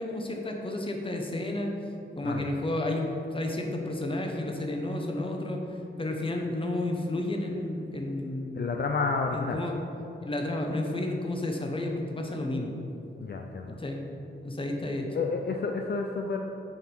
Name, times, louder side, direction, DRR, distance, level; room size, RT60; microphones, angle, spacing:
voice 1, 0.0-1.7 2.2-5.6 6.0-8.7 9.3-9.7 10.2-12.8 13.8-14.0 14.4-15.1, left 1 dB, 25° left, 2 dB, 0.9 m, -31 dB
voice 2, 8.6-9.6 13.2-13.8 15.1-16.4, left 4 dB, 55° left, 3 dB, 0.5 m, -30 dB
7.2 x 6.1 x 5.4 m, 2.9 s
wide cardioid pair, 175°, 20 cm